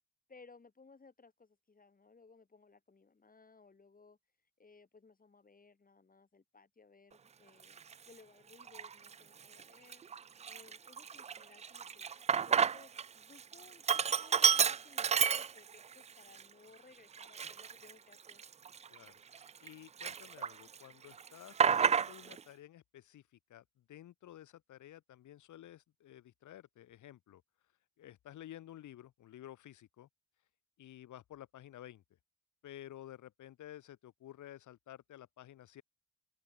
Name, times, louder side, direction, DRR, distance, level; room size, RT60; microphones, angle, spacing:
voice 1, 0.3-4.2 4.6-7.8 8.1-10.0 10.5-12.1 12.5-18.4, left 4 dB, 30° left, 7.3 m, -61 dB
Sink (filling or washing), 7.8-7.9 8.6-9.1 9.5-9.6 9.9-13.1 13.4-15.9 16.4-16.5 17.1-19.7 20.0-20.8 21.0-22.4, right 7 dB, 25° right, 0.3 m, -31 dB
voice 2, 19.6-27.4 28.0-30.1 30.8-32.0 32.6-35.8, left 12 dB, 75° left, 4.4 m, -53 dB
cardioid pair, 90°, 30 cm